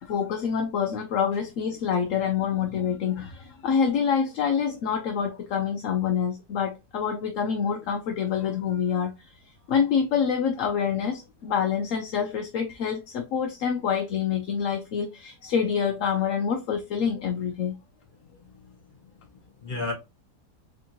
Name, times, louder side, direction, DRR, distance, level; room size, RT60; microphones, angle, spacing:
voice 1, 0.0-9.4 9.7-17.8, left 7 dB, 65° left, 0.9 m, -26 dB
voice 2, 18.4-19.9, left 2 dB, 30° left, 1.8 m, -36 dB
3.7 x 3.6 x 2.9 m
omnidirectional pair, 1.8 m